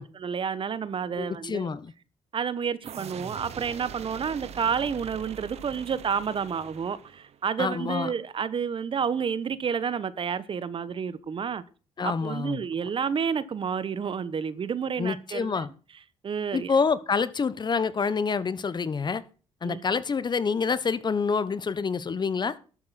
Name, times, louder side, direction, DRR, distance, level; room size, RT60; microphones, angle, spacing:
voice 1, 0.0-1.7 2.3-11.6 12.0-15.6 16.2-16.7 19.6-19.8, right 6 dB, 50° right, 1.2 m, -30 dB
voice 2, 1.2-1.9 7.6-8.1 12.0-12.6 15.0-15.7 16.5-19.2 19.6-22.5, left 5 dB, 40° left, 1.1 m, -27 dB
sound 1, 2.8-7.5, right 9 dB, 70° right, 1.2 m, -43 dB
12.5 x 7.8 x 5.9 m
cardioid pair, 75°, 11 cm